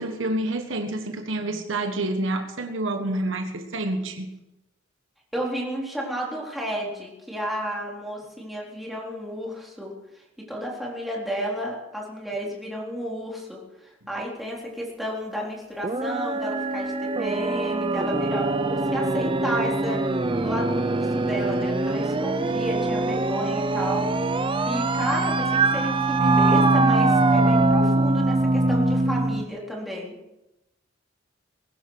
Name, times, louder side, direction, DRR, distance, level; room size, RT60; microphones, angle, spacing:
voice 1, 0.0-4.3, right 1 dB, 70° right, 5 dB, 1.5 m, -28 dB
voice 2, 5.3-9.9 10.4-20.0 20.4-24.1 24.7-30.1, equal, ahead, -3 dB, 3.8 m, -32 dB
sound 1, 15.8-29.5, right 2 dB, 25° right, 0.7 m, -23 dB
21.0 x 11.0 x 4.8 m, 0.93 s
head